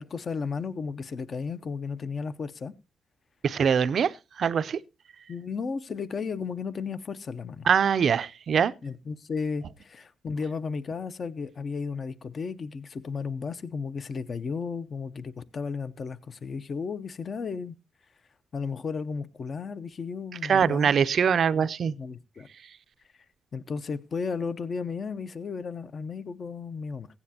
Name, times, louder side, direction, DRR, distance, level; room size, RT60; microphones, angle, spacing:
voice 1, 0.0-2.7 5.3-7.7 8.8-17.7 18.5-20.9 21.5-21.7 21.9-22.5 23.5-27.1, left 5 dB, 45° left, 0.6 m, -34 dB
voice 2, 3.4-4.1 4.4-4.8 7.7-8.7 20.5-21.9, right 7 dB, 55° right, 0.5 m, -23 dB
15.5 x 9.7 x 2.8 m
cardioid pair, 115°, 0 cm